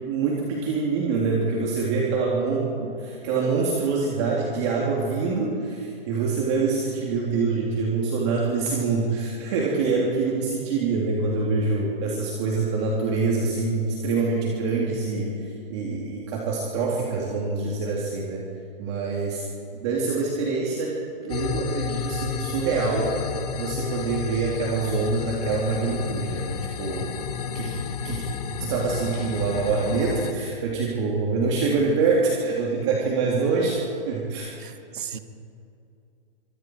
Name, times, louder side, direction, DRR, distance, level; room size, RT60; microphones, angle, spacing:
voice 1, 0.0-18.4 18.8-19.4 19.7-20.9 21.2-23.1 23.6-27.1 27.5-27.8 28.0-28.2 28.6-33.8 34.1-34.5, right 4 dB, 30° right, -3 dB, 3.2 m, -25 dB
sound 1, 21.3-30.3, left 6 dB, 40° left, 1.7 m, -31 dB
voice 2, 34.6-35.2, right 8 dB, 55° right, 8 dB, 1.9 m, -36 dB
26.0 x 25.0 x 4.7 m, 2.5 s
hypercardioid pair, 165°, 30 cm